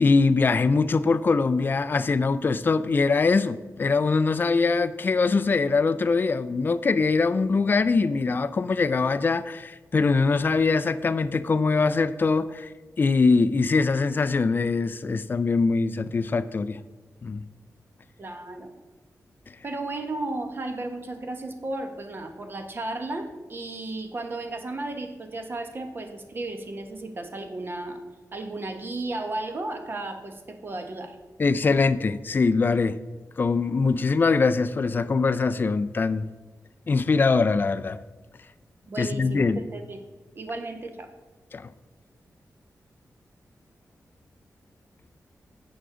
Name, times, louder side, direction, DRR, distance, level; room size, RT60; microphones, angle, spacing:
voice 1, 0.0-12.7 13.0-16.8 17.2-17.5 31.4-33.0 33.4-36.3 36.9-38.0 39.0-39.6 41.5-41.7, left 4 dB, 35° left, 0.3 m, -22 dB
voice 2, 18.2-18.7 19.6-28.0 28.3-31.2 38.9-40.0 40.3-41.1, right 2 dB, 35° right, 1.0 m, -34 dB
11.0 x 8.0 x 3.7 m
wide cardioid pair, 180°, 6 cm